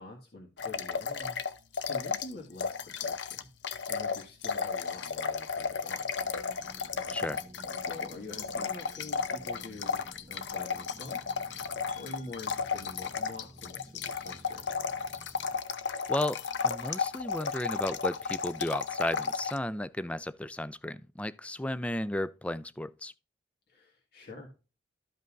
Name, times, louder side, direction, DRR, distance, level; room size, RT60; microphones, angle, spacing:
voice 1, 0.0-1.4 1.8-3.5 3.9-6.1 7.8-11.2 12.0-14.7 23.7-24.5, left 2 dB, 60° left, 1.7 m, -46 dB
sound 1, 0.6-2.3 2.6-19.6, left 5 dB, 80° left, 0.7 m, -34 dB
sound 2, 6.2-15.6, right 1 dB, 20° right, 1.4 m, -54 dB
voice 2, 7.1-7.4 16.1-23.1, left 1 dB, 5° left, 0.3 m, -34 dB
sound 3, 11.9-12.9, left 6 dB, 40° left, 1.9 m, -56 dB
13.5 x 5.4 x 2.5 m
head